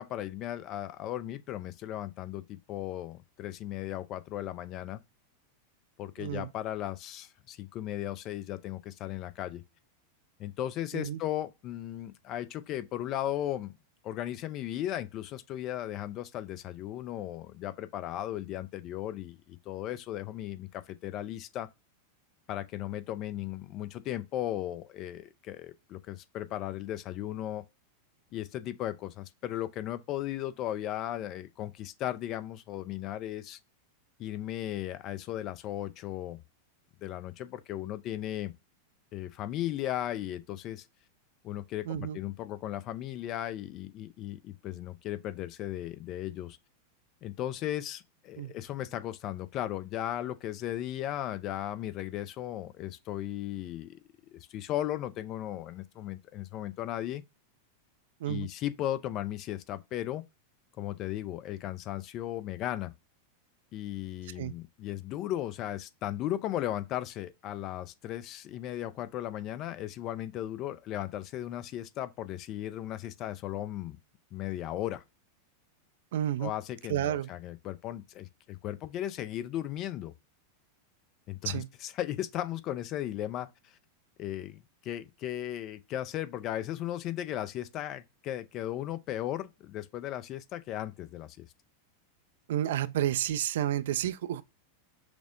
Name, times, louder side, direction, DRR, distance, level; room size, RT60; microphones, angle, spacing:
voice 1, 0.0-5.0 6.0-9.6 10.4-13.7 14.0-21.7 22.5-27.6 28.3-33.6 34.2-36.4 37.0-38.5 39.1-40.9 41.4-46.6 47.2-54.0 54.3-57.2 58.3-60.2 60.8-62.9 63.7-74.0 74.3-75.0 76.4-80.1 81.3-83.8 84.2-91.5, left 13 dB, 35° left, 0.4 m, -36 dB
voice 2, 6.2-6.5 10.9-11.2 41.9-42.2 48.4-48.5 58.2-58.5 64.4-64.5 76.1-76.5 76.9-77.3 81.4-81.7 92.5-94.4, right 11 dB, 55° right, 0.3 m, -30 dB
6.1 x 2.0 x 2.4 m
figure-of-eight pair, 90°, 0 cm